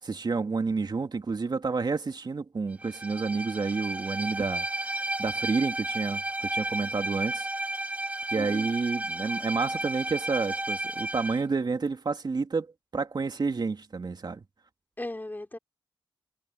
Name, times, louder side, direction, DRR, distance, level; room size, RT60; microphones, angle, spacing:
voice 1, 0.0-7.5 8.3-12.7 12.9-14.4, right 4 dB, 50° right, 3.0 m, -30 dB
Bowed string instrument, 2.8-11.4, right 1 dB, 15° right, 1.3 m, -33 dB
voice 2, 8.3-8.7 15.0-15.6, left 2 dB, 20° left, 4.9 m, -37 dB
cardioid pair, 75°, 10 cm